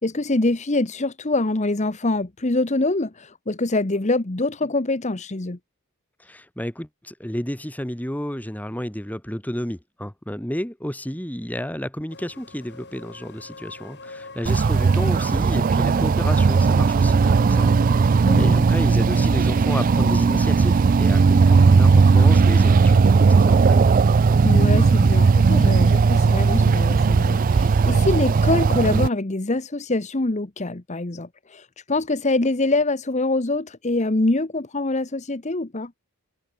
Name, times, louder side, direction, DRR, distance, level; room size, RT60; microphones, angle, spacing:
voice 1, 0.0-5.6 18.2-18.6 24.4-35.9, left 2 dB, 30° left, 1.0 m, -24 dB
voice 2, 6.2-23.9, equal, 5° left, 1.4 m, -31 dB
sound 1, 12.1-27.7, left 3 dB, 50° left, 7.4 m, -48 dB
sound 2, 14.5-29.1, right 4 dB, 40° right, 0.3 m, -17 dB
head